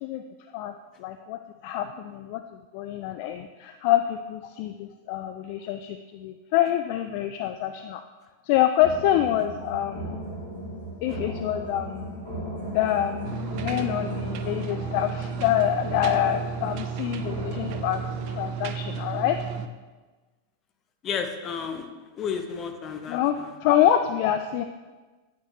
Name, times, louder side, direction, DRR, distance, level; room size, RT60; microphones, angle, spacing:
voice 1, 0.5-2.4 2.7-8.0 8.4-10.2 11.0-12.3 12.7-19.4 23.1-24.6, left 11 dB, 45° left, 8 dB, 0.3 m, -26 dB
sound 1, 8.8-18.5, right 1 dB, 65° left, 1.9 m, -37 dB
sound 2, 13.2-19.7, right 7 dB, 45° right, 0.4 m, -33 dB
voice 2, 21.0-21.9 22.1-23.6, left 6 dB, 30° left, 5 dB, 0.8 m, -32 dB
9.2 x 5.9 x 2.8 m, 1.3 s
figure-of-eight pair, 90°, 0 cm